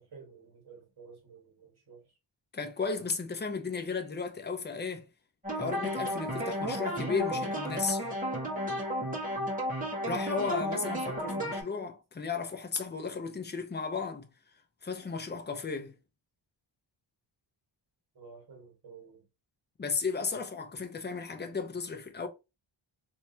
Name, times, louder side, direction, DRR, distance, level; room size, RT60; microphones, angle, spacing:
voice 1, 0.0-2.2 10.5-10.6 11.1-11.7 18.1-19.3, right 5 dB, 55° right, 1.8 m, -51 dB
voice 2, 2.5-5.0 5.5-8.0 10.1-14.3 14.8-15.9 19.8-22.3, left 5 dB, 20° left, 0.7 m, -34 dB
sound 1, 5.4-11.6, equal, 15° right, 1.6 m, -33 dB
3.3 x 3.1 x 2.8 m
wide cardioid pair, 110°, 46 cm